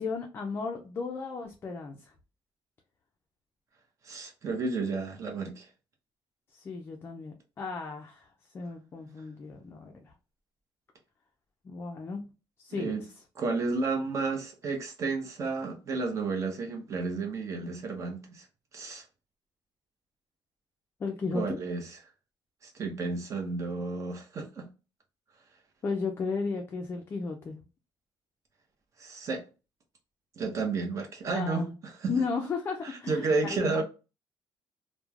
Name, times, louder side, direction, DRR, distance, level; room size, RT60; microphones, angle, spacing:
voice 1, 0.0-2.1 6.5-8.3 8.5-10.0 11.6-12.2 12.6-13.1 21.0-21.6 25.8-27.6 31.3-31.7 32.1-33.8, left 4 dB, 30° left, 0.4 m, -34 dB
voice 2, 4.0-5.7 12.7-13.0 13.4-18.5 18.7-19.0 21.3-21.9 22.6-24.7 29.0-29.4 30.4-32.1 32.8-33.8, right 4 dB, 40° right, 0.7 m, -32 dB
3.0 x 2.1 x 2.3 m
cardioid pair, 140°, 8 cm